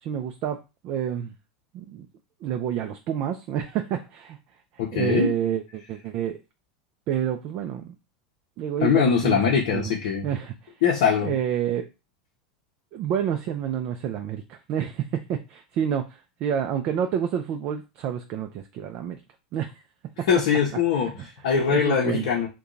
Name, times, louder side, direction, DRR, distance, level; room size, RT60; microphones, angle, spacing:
voice 1, 0.0-1.3 1.7-2.1 2.4-4.4 4.9-6.4 7.1-7.9 8.6-9.4 9.7-9.9 10.2-10.7 11.2-11.9 12.9-19.2 19.5-19.7 20.2-20.3 20.9-21.1 21.7-22.3, right 9 dB, 45° right, 6 dB, 0.4 m, -28 dB
voice 2, 4.8-5.3 8.8-10.3 10.8-11.4 20.3-22.5, left 7 dB, 60° left, -2 dB, 0.7 m, -22 dB
2.7 x 2.2 x 3.7 m, 0.28 s
hypercardioid pair, 85°, 4 cm